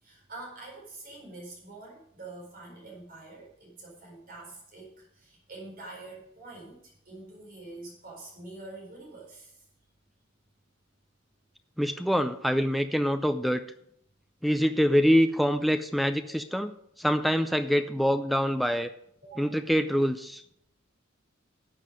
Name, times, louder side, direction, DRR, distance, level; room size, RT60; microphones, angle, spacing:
voice 1, 0.0-9.6 19.2-19.4, right 2 dB, 45° right, -1 dB, 4.6 m, -46 dB
voice 2, 11.8-13.6 14.4-16.7 17.0-18.9 19.4-20.4, equal, ahead, 10 dB, 0.4 m, -25 dB
12.0 x 7.6 x 5.1 m, 0.72 s
head